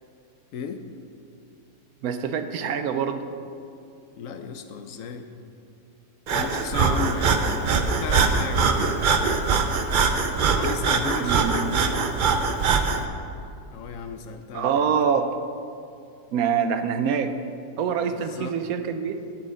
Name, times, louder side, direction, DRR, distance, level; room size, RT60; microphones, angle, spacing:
voice 1, 0.5-0.8 4.2-5.3 6.3-9.4 10.5-12.1 13.7-14.9 18.1-18.6, left 5 dB, 70° left, 7 dB, 1.0 m, -34 dB
voice 2, 2.0-3.2 11.2-11.5 14.5-15.4 16.3-17.3 17.8-19.2, right 7 dB, 80° right, 8 dB, 1.1 m, -25 dB
Breathing, 6.3-13.0, right 5 dB, 60° right, 0.5 m, -22 dB
12.5 x 7.8 x 3.8 m, 2.4 s
omnidirectional pair, 1.5 m